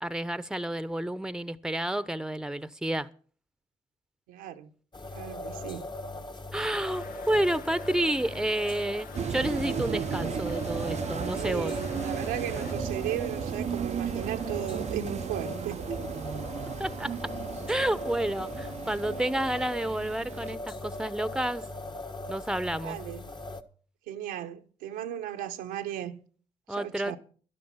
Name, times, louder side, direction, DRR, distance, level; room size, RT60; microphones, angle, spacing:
voice 1, 0.0-3.1 6.5-11.8 16.8-17.3 17.7-21.7 22.3-23.0 26.7-27.2, right 1 dB, 5° right, 1.0 m, -30 dB
voice 2, 4.3-4.7 5.1-5.8 11.3-15.8 22.8-23.2 24.1-26.2 26.7-27.2, right 11 dB, 85° right, 1.1 m, -36 dB
sound 1, 4.9-23.6, left 1 dB, 30° left, 1.5 m, -39 dB
sound 2, 6.7-12.7, left 6 dB, 70° left, 1.1 m, -48 dB
sound 3, 9.1-20.5, right 8 dB, 50° right, 0.6 m, -35 dB
12.5 x 11.5 x 5.8 m
hypercardioid pair, 45°, 15 cm